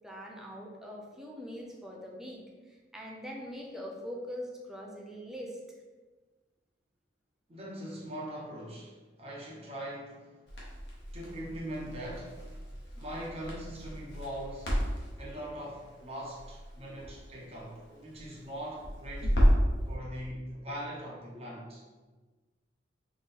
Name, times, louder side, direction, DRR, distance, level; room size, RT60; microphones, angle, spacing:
voice 1, 0.0-2.4 2.7-5.6, equal, 5° right, -3 dB, 0.6 m, -42 dB
voice 2, 7.5-10.4 11.1-12.4 13.0-14.7 15.2-19.3 19.9-21.8, equal, 35° right, -4 dB, 1.0 m, -41 dB
Crackle, 10.5-19.8, equal, 75° left, 1.3 m, -32 dB
4.2 x 3.1 x 3.7 m, 1.3 s
head